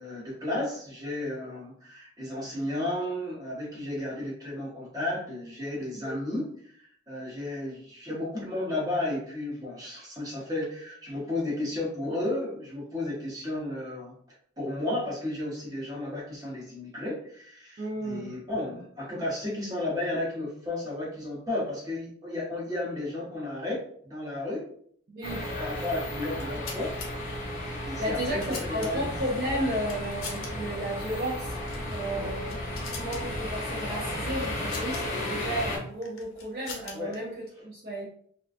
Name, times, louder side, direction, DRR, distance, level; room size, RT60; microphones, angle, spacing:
voice 1, 0.0-14.1 14.6-24.7 25.6-27.0 27.8-29.0 32.2-32.3 36.9-37.1, left 1 dB, 20° right, -5 dB, 0.8 m, -33 dB
voice 2, 17.8-18.4 25.1-25.5 28.0-31.6 31.9-38.1, right 1 dB, 50° right, -4 dB, 0.5 m, -33 dB
sound 1, 25.2-35.8, left 1 dB, 35° left, 0.7 m, -34 dB
sound 2, 26.3-27.1 28.0-29.2 29.8-30.5 30.8-30.9 31.6-31.9 32.3-33.2 34.4-35.0 36.0-37.2, left 4 dB, 85° left, 0.6 m, -42 dB
2.4 x 2.2 x 2.4 m, 0.62 s
head